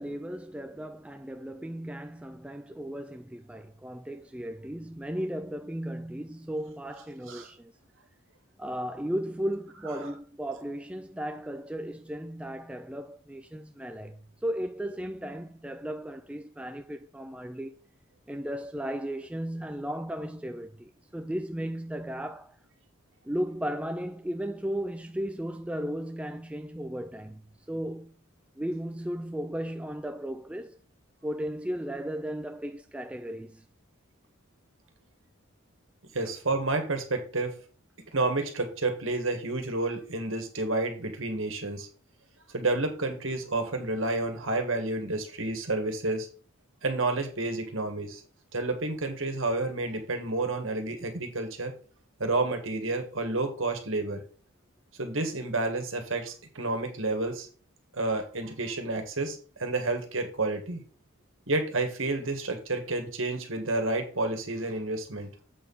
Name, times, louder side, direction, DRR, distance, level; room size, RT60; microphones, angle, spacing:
voice 1, 0.0-7.7 8.6-17.8 18.3-22.5 23.2-27.4 27.7-28.1 28.6-30.8 31.2-33.6, equal, 5° right, 0.3 m, -35 dB
voice 2, 36.1-37.5 38.1-41.9 42.5-46.3 46.8-48.2 48.5-51.7 52.2-54.2 55.0-57.5 57.9-60.8 61.5-65.3, right 2 dB, 70° right, 1.8 m, -30 dB
7.6 x 4.5 x 5.5 m
head